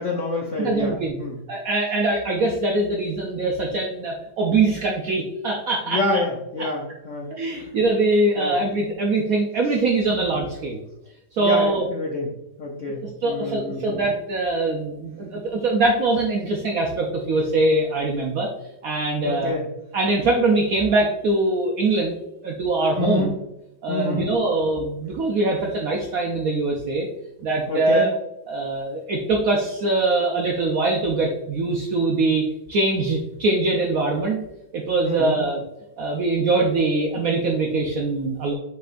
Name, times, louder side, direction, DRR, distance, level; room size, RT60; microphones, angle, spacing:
voice 1, 0.0-1.4 5.9-7.7 8.4-8.5 11.4-12.3 12.6-14.0 19.2-19.7 23.0-23.3 23.9-24.3 27.7-28.1 35.0-35.4, left 2 dB, 70° left, -1 dB, 0.7 m, -27 dB
voice 2, 0.6-1.2 1.5-6.2 6.6-6.7 7.4-10.8 11.3-11.9 13.0-18.5 18.8-19.5 19.9-23.3 23.8-27.1 27.4-28.1 28.5-34.4 34.7-35.6 36.0-38.5, right 2 dB, 70° right, 0 dB, 0.8 m, -23 dB
5.5 x 3.9 x 2.5 m, 0.92 s
omnidirectional pair, 2.1 m